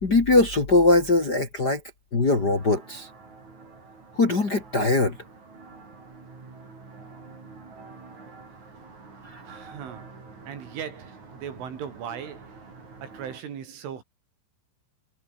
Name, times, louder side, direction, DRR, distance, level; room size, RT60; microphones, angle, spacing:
voice 1, 0.0-1.8 2.1-3.1 4.1-5.2 9.2-9.4, left 2 dB, 30° left, 2.1 m, -21 dB
sound 1, 2.3-13.4, right 4 dB, 40° right, 7.3 m, -47 dB
voice 2, 9.4-12.6 13.0-14.0, right 8 dB, 85° right, 6.2 m, -38 dB
omnidirectional pair, 5.4 m